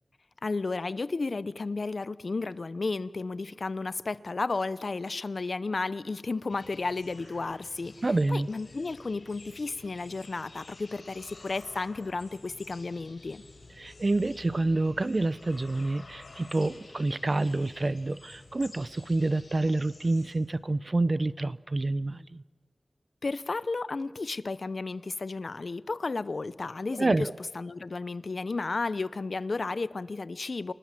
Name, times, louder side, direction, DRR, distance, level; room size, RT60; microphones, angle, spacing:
voice 1, 0.4-7.9 8.3-13.4 23.2-27.3 27.5-30.7, left 3 dB, 65° left, 17 dB, 0.7 m, -33 dB
sound 1, 6.5-20.3, left 3 dB, 85° left, 4.5 m, -51 dB
voice 2, 8.0-8.5 13.8-22.4 27.0-27.3, right 2 dB, 45° right, 17 dB, 0.7 m, -28 dB
28.5 x 18.5 x 7.5 m, 1.4 s
wide cardioid pair, 70°, 0 cm